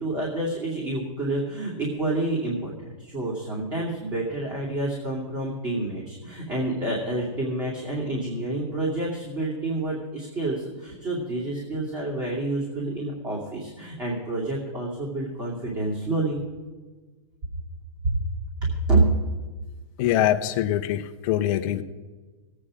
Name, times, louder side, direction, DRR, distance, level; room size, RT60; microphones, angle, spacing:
voice 1, 0.0-2.7 3.0-16.4 18.0-18.2 18.6-19.1, right 2 dB, 25° right, -4 dB, 2.6 m, -28 dB
voice 2, 20.0-21.8, left 12 dB, 35° left, 6 dB, 0.7 m, -23 dB
18.0 x 8.7 x 5.0 m, 1.3 s
hypercardioid pair, 155°, 17 cm